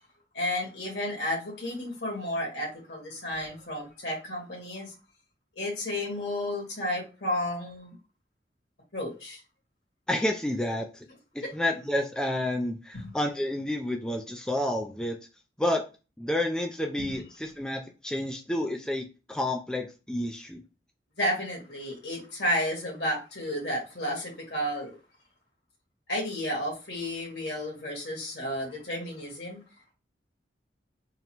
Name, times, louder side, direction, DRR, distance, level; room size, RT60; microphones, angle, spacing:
voice 1, 0.3-4.9 5.5-8.0 8.9-9.4 11.4-11.5 12.9-13.2 17.0-17.1 21.2-25.0 26.1-29.6, left 1 dB, 65° left, 0 dB, 1.8 m, -32 dB
voice 2, 10.1-11.1 11.3-15.2 15.6-15.8 16.2-20.6, left 1 dB, 5° left, 3 dB, 0.3 m, -30 dB
3.9 x 2.2 x 4.4 m, 0.30 s
head